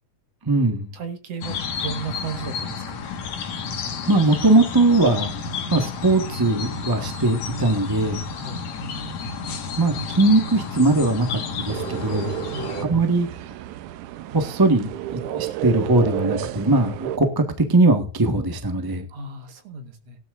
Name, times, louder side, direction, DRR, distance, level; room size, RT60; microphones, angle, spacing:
voice 1, 0.4-0.9 4.1-5.3 5.7-8.2 9.8-12.3 12.8-13.3 14.3-19.1, right 2 dB, 15° right, 6 dB, 0.8 m, -20 dB
voice 2, 0.9-3.1 8.3-8.6 12.5-12.7 19.1-20.2, right 4 dB, 60° right, 7 dB, 2.7 m, -35 dB
sound 1, 1.4-12.8, left 5 dB, 65° left, 3.0 m, -31 dB
sound 2, 11.7-17.2, right 12 dB, 90° right, 2.3 m, -31 dB
17.5 x 12.0 x 2.6 m, 0.35 s
omnidirectional pair, 3.4 m